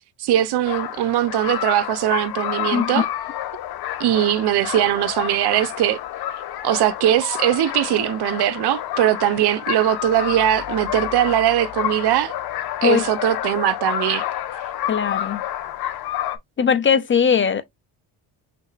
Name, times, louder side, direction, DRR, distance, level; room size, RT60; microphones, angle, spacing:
voice 1, 0.2-3.1 4.0-6.0 6.6-12.3 12.8-14.3, right 12 dB, 70° right, 0.7 m, -20 dB
sound 1, 0.6-16.4, left 12 dB, 65° left, 0.8 m, -29 dB
voice 2, 2.7-3.0 12.8-13.0 14.9-15.4 16.6-17.6, left 7 dB, 30° left, 0.5 m, -19 dB
5.9 x 2.8 x 2.4 m
cardioid pair, 105°, 41 cm